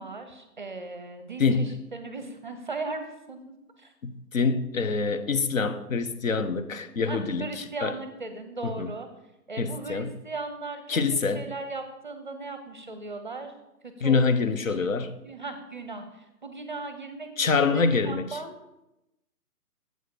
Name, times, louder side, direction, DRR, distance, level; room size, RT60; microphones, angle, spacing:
voice 1, 0.0-3.9 7.0-9.1 9.5-13.5 13.8-14.2 14.6-14.9 15.2-18.6, right 3 dB, 30° right, 8 dB, 0.6 m, -38 dB
voice 2, 1.4-1.8 4.0-7.9 8.6-8.9 9.6-10.1 10.9-11.4 14.0-15.2 17.4-18.4, left 4 dB, 60° left, 10 dB, 0.8 m, -25 dB
7.9 x 4.7 x 6.2 m, 0.92 s
figure-of-eight pair, 155°, 46 cm